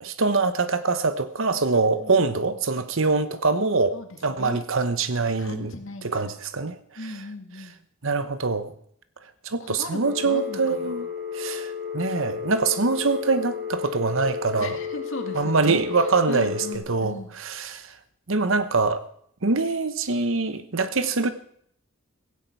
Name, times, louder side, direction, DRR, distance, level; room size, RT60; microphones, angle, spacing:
voice 1, 0.0-5.7 6.0-6.8 8.0-8.7 9.4-11.1 11.3-14.8 15.3-17.9 18.3-19.0 19.4-21.3, right 4 dB, 65° right, 1.0 m, -24 dB
voice 2, 2.0-2.6 3.9-4.6 5.4-6.4 7.0-7.8 9.6-11.0 14.6-15.8 16.3-17.3, left 2 dB, 65° left, 2.2 m, -37 dB
Telephone, 10.0-16.8, left 7 dB, 40° right, 3.1 m, -33 dB
16.5 x 16.0 x 4.7 m
head